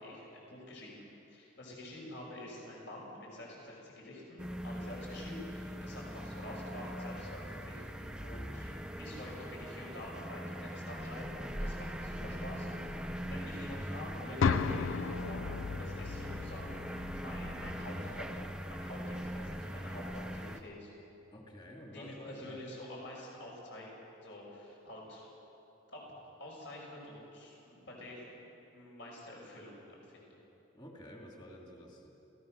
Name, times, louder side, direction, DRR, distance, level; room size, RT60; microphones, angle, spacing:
voice 1, 0.0-8.7 9.0-18.4 18.7-20.9 21.9-23.9 24.2-25.2 25.9-26.0 26.4-28.3 28.7-30.4, left 1 dB, 65° left, -3 dB, 6.3 m, -48 dB
sound 1, 4.4-20.6, equal, 5° right, 0.7 m, -41 dB
sound 2, 14.4-18.4, left 5 dB, 80° left, 0.5 m, -35 dB
voice 2, 21.3-22.6 30.7-32.1, left 1 dB, 20° left, -1 dB, 2.4 m, -50 dB
28.0 x 17.5 x 6.5 m, 3.0 s
head